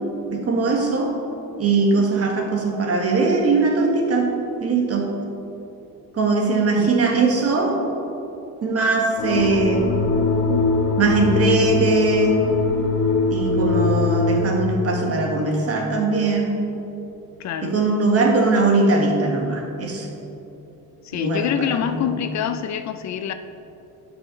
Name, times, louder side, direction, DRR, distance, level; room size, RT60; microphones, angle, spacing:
voice 1, 0.3-1.1 1.6-4.3 4.6-5.1 6.1-7.8 8.6-9.9 11.0-12.4 13.3-16.6 17.6-20.1 21.1-22.1, right 3 dB, 40° right, 1 dB, 1.6 m, -20 dB
sound 1, 9.2-14.4, left 3 dB, 65° left, 1.4 m, -21 dB
voice 2, 17.4-17.8 21.0-23.3, left 9 dB, 50° left, 9 dB, 0.5 m, -26 dB
11.0 x 6.0 x 3.8 m, 3.0 s
cardioid pair, 115°, 37 cm